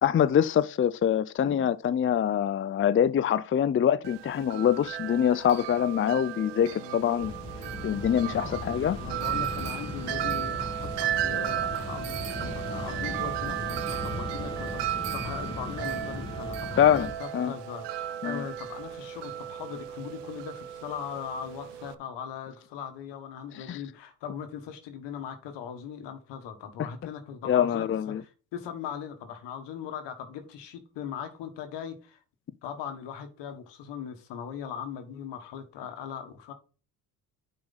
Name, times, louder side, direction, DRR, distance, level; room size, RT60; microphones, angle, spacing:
voice 1, 0.0-7.3 7.8-9.0 16.8-17.5 18.2-18.4 23.5-23.8 27.4-28.2, left 9 dB, 30° left, 0.5 m, -24 dB
Wind chime, 4.0-21.9, right 11 dB, 75° right, 0.7 m, -35 dB
voice 2, 6.6-7.1 7.8-8.6 8.9-32.2 32.6-36.5, left 8 dB, 80° left, 1.6 m, -39 dB
sound 1, 7.2-17.1, left 1 dB, 10° left, 2.7 m, -38 dB
9.1 x 5.0 x 4.1 m
supercardioid pair, 65°, 42 cm